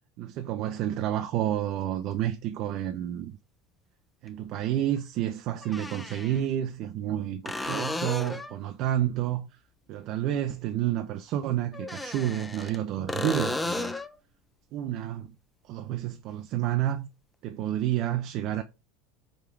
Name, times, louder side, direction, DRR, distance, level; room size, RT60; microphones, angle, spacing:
voice 1, 0.2-3.4 4.2-9.5 9.9-13.9 14.7-15.3 15.6-17.1 17.4-18.6, right 12 dB, 55° right, 0.4 m, -30 dB
sound 1, 2.1-2.2 4.3-4.4 5.6-6.4 7.4-8.6 11.7-12.8 13.1-14.1 17.8-17.9, left 2 dB, 10° left, 0.5 m, -33 dB
5.0 x 2.3 x 4.5 m
hypercardioid pair, 90°, 0 cm